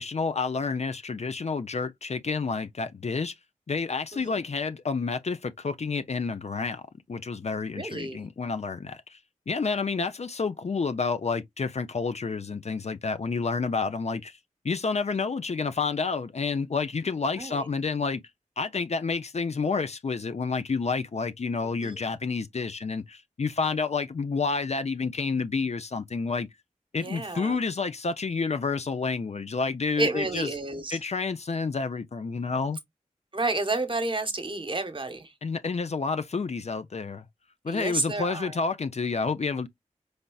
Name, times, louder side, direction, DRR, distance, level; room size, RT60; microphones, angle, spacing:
voice 1, 0.0-3.3 3.7-6.8 7.1-9.2 9.5-14.4 14.6-18.2 18.6-26.5 26.9-30.5 30.9-32.8 35.4-37.3 37.6-39.7, left 4 dB, 55° left, 0.5 m, -29 dB
voice 2, 7.7-8.2 17.4-17.6 21.6-22.0 27.0-27.6 30.0-31.0 33.3-35.3 37.7-38.5, right 2 dB, 40° right, 1.1 m, -30 dB
4.0 x 3.3 x 2.3 m
cardioid pair, 40°, 13 cm